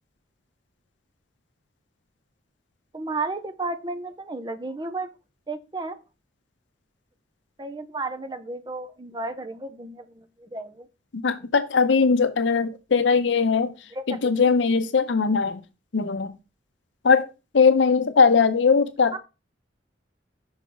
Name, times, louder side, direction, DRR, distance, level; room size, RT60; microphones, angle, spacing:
voice 1, 2.9-5.1 5.5-6.0 7.6-10.9 13.9-14.5 19.1-19.2, right 3 dB, 25° right, 0.6 m, -33 dB
voice 2, 11.2-13.7 14.1-15.6 15.9-16.3 17.0-19.2, left 5 dB, 80° left, 0.6 m, -20 dB
5.5 x 5.0 x 3.8 m
head